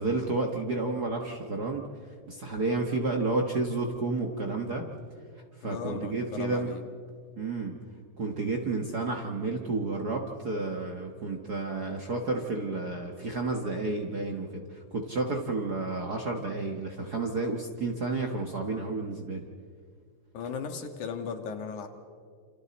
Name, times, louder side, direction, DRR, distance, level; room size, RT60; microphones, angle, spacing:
voice 1, 0.0-1.8 2.3-4.8 5.6-6.7 7.4-7.7 8.2-19.4, right 3 dB, 45° right, 2 dB, 1.3 m, -31 dB
voice 2, 5.6-6.8 20.3-21.9, left 6 dB, 85° left, 5 dB, 3.1 m, -36 dB
28.0 x 28.0 x 4.2 m, 2.1 s
omnidirectional pair, 3.4 m